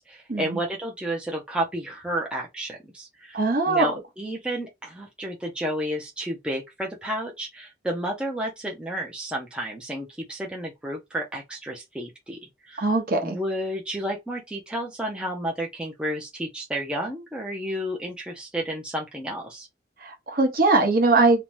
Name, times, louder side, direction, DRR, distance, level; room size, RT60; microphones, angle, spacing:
voice 1, 0.0-12.4 12.7-12.9 13.2-19.7, right 1 dB, 5° right, 0.4 m, -31 dB
voice 2, 3.3-3.9 12.8-13.4 20.0-21.4, right 3 dB, 50° right, 0.8 m, -21 dB
2.6 x 2.1 x 3.1 m
head